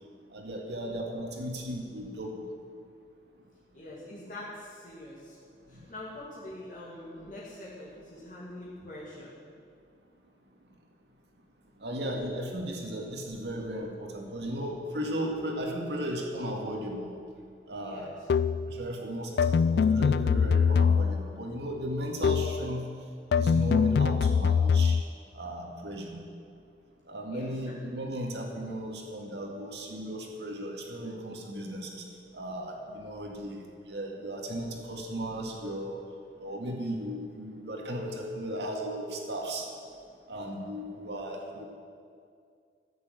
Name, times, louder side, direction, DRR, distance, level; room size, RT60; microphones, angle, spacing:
voice 1, 0.3-2.5 11.8-17.1 17.7-18.1 18.7-22.9 23.3-25.0 25.3-26.2 27.1-32.0 32.3-36.0 36.4-39.7 40.3-41.6, equal, 75° right, 1 dB, 2.0 m, -36 dB
voice 2, 3.7-5.4 5.7-9.3 17.8-18.2 27.3-27.8, left 1 dB, 45° left, -7 dB, 2.3 m, -44 dB
sound 1, 18.3-18.7 19.4-21.3 22.2-22.6 23.3-25.0, left 6 dB, 70° left, 0.3 m, -23 dB
14.0 x 6.8 x 8.1 m, 2.3 s
head